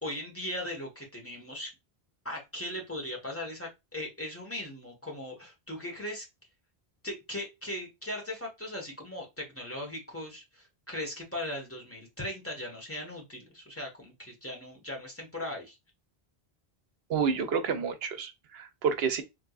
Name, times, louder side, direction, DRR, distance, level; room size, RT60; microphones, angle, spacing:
voice 1, 0.0-1.7 2.2-6.2 7.0-15.8, left 1 dB, 15° left, 1.3 m, -38 dB
voice 2, 17.1-19.2, right 6 dB, 70° right, 0.9 m, -29 dB
3.5 x 3.0 x 2.4 m
omnidirectional pair, 1.1 m